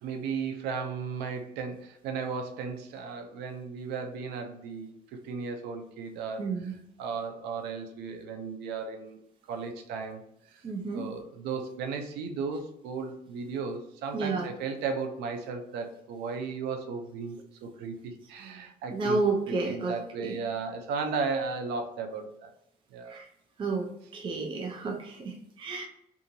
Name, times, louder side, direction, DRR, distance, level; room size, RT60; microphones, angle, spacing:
voice 1, 0.0-6.5 7.0-9.2 9.5-10.2 10.5-10.6 10.9-19.2 19.5-22.5 22.9-23.2, right 5 dB, 85° right, 5 dB, 0.5 m, -35 dB
voice 2, 6.4-6.7 10.6-11.1 14.1-14.5 18.9-20.4 23.1-23.3 23.6-25.9, right 3 dB, 30° right, 1 dB, 0.5 m, -31 dB
2.7 x 2.5 x 2.6 m, 0.77 s
cardioid pair, 110°, 17 cm